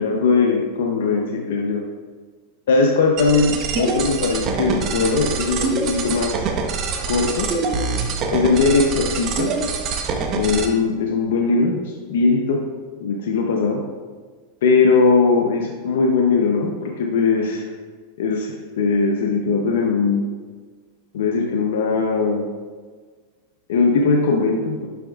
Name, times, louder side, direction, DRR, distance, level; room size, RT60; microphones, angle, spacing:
voice 1, 0.0-1.8 2.7-6.5 7.1-7.5 8.3-9.5 10.3-12.6 13.0-13.8 14.6-17.6 18.2-20.2 21.1-22.5 23.7-24.9, left 4 dB, 80° left, 1 dB, 0.6 m, -19 dB
sound 1, 3.2-10.7, right 4 dB, 40° right, 0.7 m, -25 dB
6.9 x 6.1 x 2.4 m, 1.5 s
supercardioid pair, 125°, 0 cm